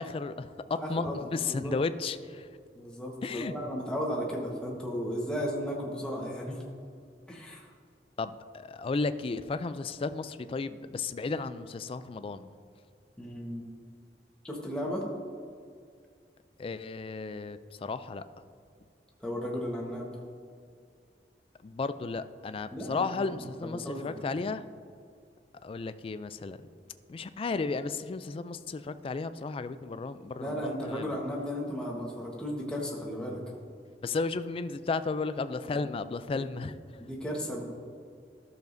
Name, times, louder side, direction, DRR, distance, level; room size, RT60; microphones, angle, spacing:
voice 1, 0.0-2.5 3.2-3.5 8.2-12.5 16.6-18.2 21.6-24.6 25.6-26.6 27.1-31.2 34.0-36.8, left 4 dB, 30° left, 12 dB, 0.3 m, -34 dB
voice 2, 0.7-1.8 2.7-6.6 7.3-7.7 13.2-13.7 14.4-15.0 19.2-20.1 22.7-23.3 23.6-24.2 30.4-33.4 36.3-36.5 37.0-37.6, equal, 5° left, -3 dB, 1.3 m, -35 dB
13.0 x 6.9 x 2.6 m, 2.2 s
head